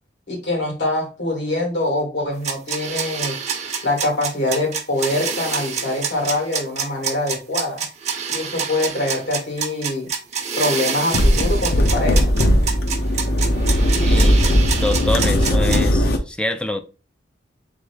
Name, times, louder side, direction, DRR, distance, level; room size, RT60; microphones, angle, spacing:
voice 1, 0.3-3.4 3.8-7.8 8.3-10.1 10.6-12.3, left 2 dB, 90° left, 2.2 m, -24 dB
sound 1, 2.4-15.8, right 6 dB, 40° right, 0.6 m, -27 dB
Late Night Car Drive, 11.1-16.2, equal, 60° left, 0.6 m, -17 dB
voice 2, 14.0-16.8, left 1 dB, 5° left, 0.3 m, -26 dB
3.6 x 3.5 x 3.3 m
head